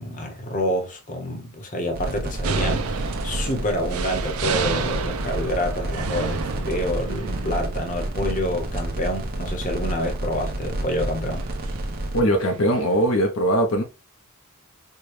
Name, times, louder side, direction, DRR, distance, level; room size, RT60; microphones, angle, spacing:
voice 1, 0.0-11.5, left 1 dB, 40° left, 0.9 m, -28 dB
sound 1, 1.9-12.2, right 1 dB, 45° right, 0.8 m, -30 dB
sound 2, 2.4-13.2, right 5 dB, 85° right, 0.5 m, -32 dB
voice 2, 12.1-13.8, right 1 dB, 65° left, 0.8 m, -20 dB
4.5 x 2.2 x 3.1 m
head